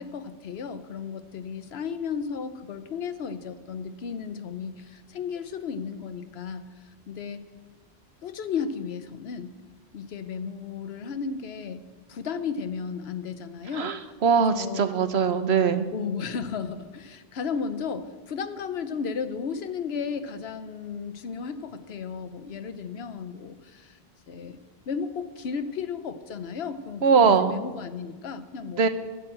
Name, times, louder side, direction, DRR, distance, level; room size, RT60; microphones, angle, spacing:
voice 1, 0.0-7.4 8.2-9.6 9.9-14.9 15.9-24.0 24.3-24.6 24.9-28.8, left 6 dB, 75° left, 10 dB, 1.1 m, -34 dB
voice 2, 13.7-15.9 27.0-27.6 28.8-28.9, right 6 dB, 80° right, 10 dB, 1.2 m, -21 dB
12.5 x 9.2 x 7.7 m, 1.4 s
omnidirectional pair, 1.1 m